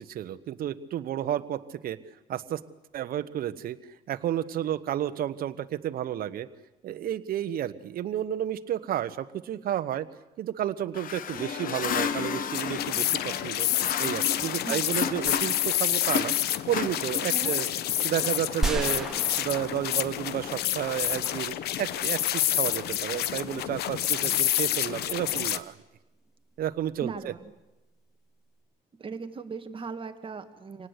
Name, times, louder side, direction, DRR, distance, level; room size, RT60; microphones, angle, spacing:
voice 1, 0.0-2.0 2.3-2.6 2.9-3.8 4.1-6.5 6.8-10.0 10.4-13.7 14.0-16.3 16.7-17.7 18.0-19.1 19.4-25.8 26.6-27.3, right 11 dB, 60° right, 11 dB, 1.2 m, -31 dB
sound 1, 10.9-15.7 16.0-17.5, left 7 dB, 55° left, 1.3 m, -33 dB
sound 2, 12.5-25.6, left 12 dB, 75° left, 0.9 m, -28 dB
sound 3, 18.6-20.9, right 2 dB, 5° right, 2.5 m, -33 dB
voice 2, 27.0-27.5 29.0-30.9, right 4 dB, 30° right, 7 dB, 1.9 m, -38 dB
26.0 x 18.5 x 8.3 m, 1.0 s
cardioid pair, 110°, 17 cm